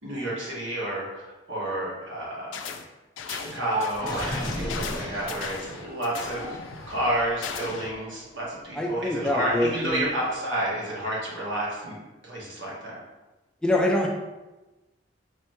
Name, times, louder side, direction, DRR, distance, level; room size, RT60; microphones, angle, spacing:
voice 1, 0.0-2.6 3.2-6.6 6.9-12.0 12.2-13.0, right 1 dB, 80° right, -5 dB, 1.4 m, -30 dB
sound 1, 2.5-2.9 3.2-8.0, left 6 dB, 85° left, 0.4 m, -37 dB
sound 2, 3.5-10.4, right 1 dB, 30° right, 1.0 m, -41 dB
Gurgling, 3.9-6.1, equal, 20° left, 0.9 m, -33 dB
voice 2, 8.7-10.1 13.6-14.1, left 1 dB, 5° left, -1 dB, 0.4 m, -25 dB
4.0 x 3.3 x 2.9 m, 1.1 s
head